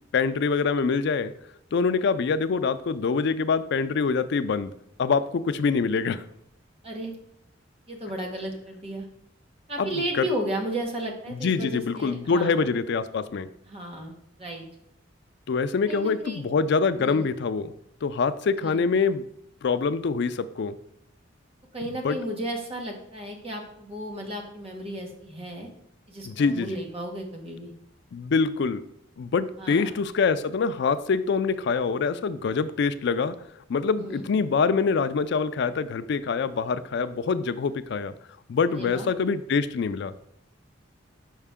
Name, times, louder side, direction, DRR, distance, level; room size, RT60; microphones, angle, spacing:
voice 1, 0.1-1.3 1.7-4.7 5.0-6.2 9.8-10.3 11.3-13.5 15.5-17.7 18.0-19.2 19.6-20.8 22.0-22.2 26.2-26.7 28.1-28.8 29.2-33.3 33.7-38.1 38.5-40.1, left 5 dB, 60° left, 12 dB, 0.4 m, -25 dB
voice 2, 7.9-9.1 9.7-12.7 13.7-14.1 14.4-14.7 15.9-16.4 17.0-17.3 18.6-18.8 21.7-25.7 26.1-27.7 29.6-30.0 33.9-34.2 38.7-39.1, right 1 dB, 30° right, 2 dB, 1.1 m, -34 dB
5.5 x 4.9 x 3.6 m, 0.75 s
head